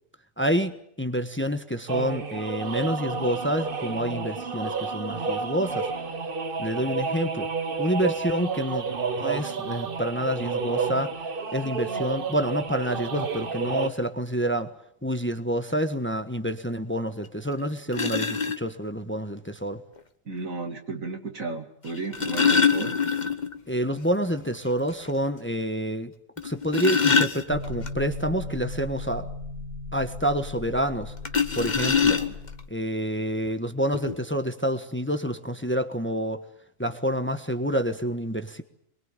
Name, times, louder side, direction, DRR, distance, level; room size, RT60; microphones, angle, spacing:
voice 1, 0.4-5.9 6.6-7.5 7.8-8.9 9.2-11.1 11.5-14.7 15.0-19.8 23.7-26.1 26.4-29.3 29.9-31.1 31.5-32.2 32.7-36.4 36.8-38.6, equal, 10° left, 9 dB, 1.3 m, -28 dB
sound 1, 1.9-13.9, right 4 dB, 45° right, 1.4 m, -30 dB
sound 2, 17.2-17.3 17.9-18.6 20.0-20.1 21.9-23.6 23.9-24.0 24.4-24.5 25.0-25.1 26.4-27.9 31.2-32.6 33.5-33.6 33.9-34.1, left 5 dB, 35° left, 1.3 m, -24 dB
voice 2, 20.2-22.9 32.0-32.3, right 3 dB, 85° right, 5 dB, 2.9 m, -34 dB
sound 3, 27.5-32.6, left 3 dB, 25° right, 4.3 m, -37 dB
23.5 x 22.5 x 9.0 m, 0.71 s
omnidirectional pair, 1.4 m